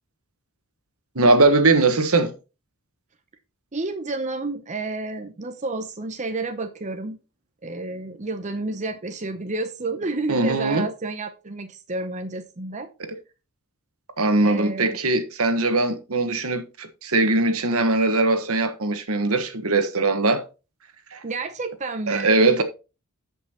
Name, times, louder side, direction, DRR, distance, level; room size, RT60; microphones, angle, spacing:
voice 1, 1.1-2.3 10.3-10.9 14.2-20.4 21.1-21.2 22.1-22.6, right 2 dB, 75° right, 1.4 m, -20 dB
voice 2, 3.7-7.2 7.6-12.9 14.4-15.0 21.2-22.3, right 3 dB, 35° right, 0.7 m, -30 dB
14.0 x 5.5 x 2.9 m
head